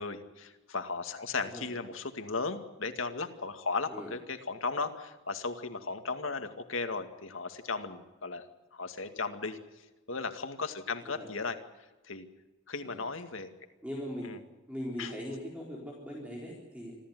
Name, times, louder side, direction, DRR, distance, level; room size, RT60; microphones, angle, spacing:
voice 1, 0.0-8.4 8.7-9.6 10.1-11.6 12.0-12.3 12.7-13.5 14.2-14.4 15.0-15.1, left 4 dB, 80° left, 7 dB, 2.2 m, -36 dB
voice 2, 13.8-14.3 14.7-17.0, equal, 5° right, -2 dB, 4.2 m, -40 dB
26.0 x 14.5 x 9.4 m, 1.1 s
head